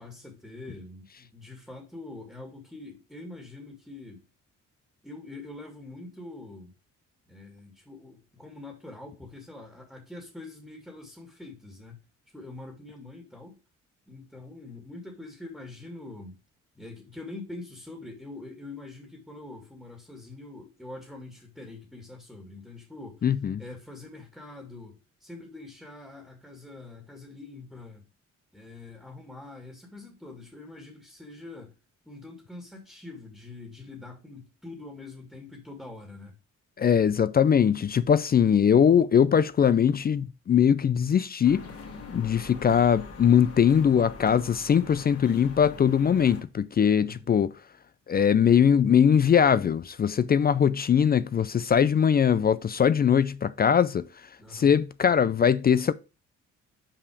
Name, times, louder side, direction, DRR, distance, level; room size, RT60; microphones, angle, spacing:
voice 1, 0.0-4.3 5.0-6.7 7.3-12.0 12.3-13.6 14.1-16.4 16.8-23.3 23.6-28.0 28.5-31.7 32.1-36.3 47.0-47.4 54.4-54.8, left 2 dB, ahead, 1.9 m, -44 dB
voice 2, 23.2-23.6 36.8-41.6 42.1-47.5 48.1-54.0 54.5-55.9, left 8 dB, 30° left, 0.4 m, -21 dB
sound 1, 41.4-46.4, left 3 dB, 50° left, 2.1 m, -43 dB
5.8 x 4.9 x 4.8 m
cardioid pair, 90°, 30 cm